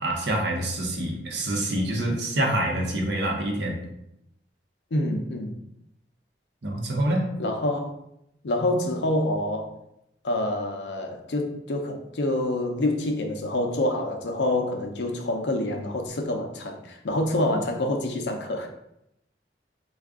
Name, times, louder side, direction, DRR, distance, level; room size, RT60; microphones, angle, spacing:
voice 1, 0.0-3.8 6.6-7.3, right 1 dB, 70° right, 1 dB, 0.7 m, -26 dB
voice 2, 4.9-5.5 7.4-7.9 8.4-9.7 10.2-18.7, left 1 dB, 75° left, 4 dB, 0.5 m, -27 dB
3.4 x 2.3 x 3.5 m, 0.81 s
head